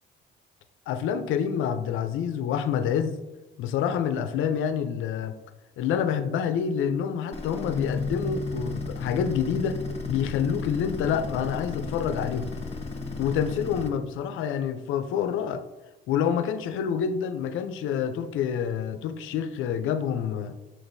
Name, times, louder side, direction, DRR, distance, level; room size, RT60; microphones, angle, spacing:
voice 1, 0.9-3.2 3.6-5.3 5.8-9.8 10.1-12.5 13.2-15.6 16.1-20.6, left 8 dB, 85° left, 10 dB, 0.5 m, -27 dB
sound 1, 7.3-13.9, left 3 dB, 30° left, 0.9 m, -34 dB
6.2 x 6.1 x 2.6 m, 1.1 s
cardioid pair, 90°, 20 cm